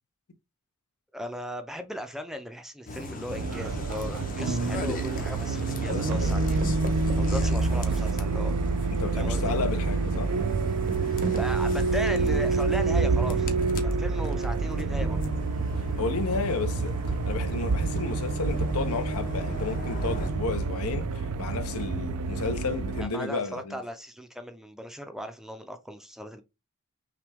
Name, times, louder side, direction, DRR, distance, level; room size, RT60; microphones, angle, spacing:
voice 1, 1.1-6.6 7.2-8.5 9.2-9.6 11.3-13.5 13.8-15.2 23.0-26.4, equal, ahead, 0.4 m, -37 dB
sound 1, 2.9-20.3, left 2 dB, 40° left, 0.7 m, -40 dB
sound 2, 3.3-23.1, right 3 dB, 80° right, 0.5 m, -27 dB
sound 3, 4.1-4.2 4.6-5.2 5.5-8.6 8.9-12.5 13.5-14.0, right 1 dB, 45° right, 0.7 m, -40 dB
voice 2, 8.9-10.3 16.0-23.8, left 4 dB, 75° left, 0.7 m, -32 dB
5.9 x 2.2 x 3.4 m
head